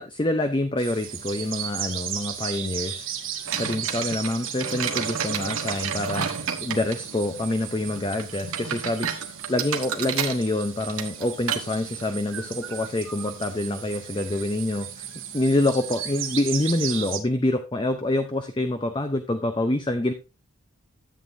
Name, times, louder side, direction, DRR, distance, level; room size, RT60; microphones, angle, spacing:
voice 1, 0.0-3.1 3.4-6.3 6.6-9.1 9.5-15.1 15.3-20.1, left 1 dB, 20° left, 7 dB, 0.6 m, -26 dB
sound 1, 0.8-17.2, right 9 dB, 60° right, 1.5 m, -36 dB
sound 2, 3.5-14.4, right 6 dB, 85° right, 1.4 m, -33 dB
12.5 x 8.1 x 2.7 m, 0.29 s
head